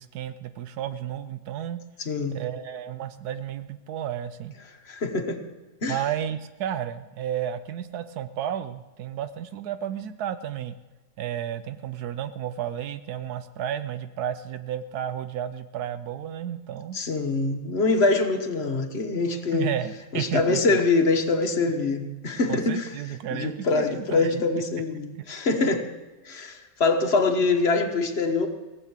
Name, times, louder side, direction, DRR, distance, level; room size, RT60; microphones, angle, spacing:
voice 1, 0.0-1.8 2.3-4.5 5.9-10.8 11.2-17.0 19.5-20.8 22.5-24.4 25.1-25.2, right 10 dB, 80° right, 11 dB, 1.1 m, -32 dB
voice 2, 2.0-2.4 4.9-5.4 5.8-6.0 16.9-19.7 20.1-22.9 23.3-25.8 26.2-28.5, left 3 dB, 45° left, 5 dB, 1.3 m, -24 dB
18.0 x 8.3 x 7.3 m, 1.2 s
omnidirectional pair, 1.6 m